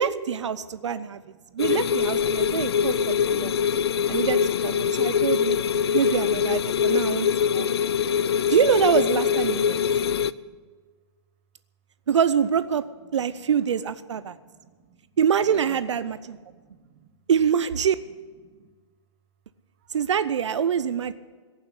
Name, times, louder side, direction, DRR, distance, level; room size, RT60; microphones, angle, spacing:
voice 1, 0.0-1.2 1.5-3.6 4.1-5.6 5.9-7.3 7.5-7.8 8.5-9.8 12.1-12.8 13.1-14.4 15.2-16.4 17.3-18.0 19.9-21.1, right 8 dB, 75° right, 14 dB, 0.6 m, -25 dB
voice 2, 0.6-1.6 9.7-10.6 13.1-13.2 14.2-15.0 15.3-15.8 16.2-17.1 18.4-18.7 19.8-19.9, right 7 dB, 25° right, 7 dB, 1.0 m, -52 dB
sound 1, 1.6-10.3, left 7 dB, 60° left, 0.4 m, -23 dB
17.0 x 7.3 x 9.7 m, 1.5 s
hypercardioid pair, 180°, 15 cm